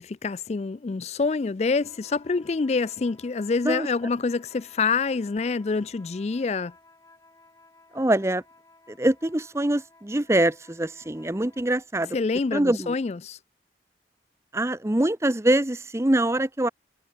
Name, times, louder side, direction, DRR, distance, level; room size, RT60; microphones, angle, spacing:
voice 1, 0.0-6.7 12.1-13.4, left 4 dB, 35° left, 0.4 m, -26 dB
sound 1, 1.7-11.9, left 2 dB, 20° left, 6.4 m, -56 dB
voice 2, 7.9-8.4 8.9-12.2 12.5-13.0 14.5-16.7, right 1 dB, 15° right, 0.7 m, -24 dB
head